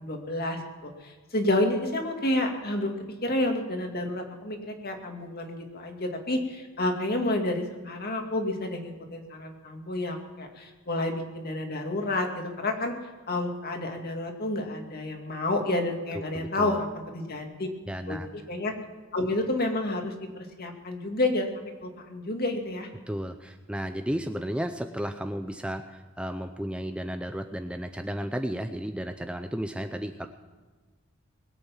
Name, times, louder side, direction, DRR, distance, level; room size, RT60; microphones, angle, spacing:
voice 1, 0.0-12.9 13.3-17.7 18.1-18.2 18.5-18.7 19.1-22.9, left 1 dB, 45° left, 3 dB, 2.3 m, -30 dB
voice 2, 16.3-16.8 17.9-18.3 23.1-30.3, equal, 5° right, 7 dB, 0.6 m, -33 dB
21.0 x 8.6 x 7.2 m, 1.4 s
head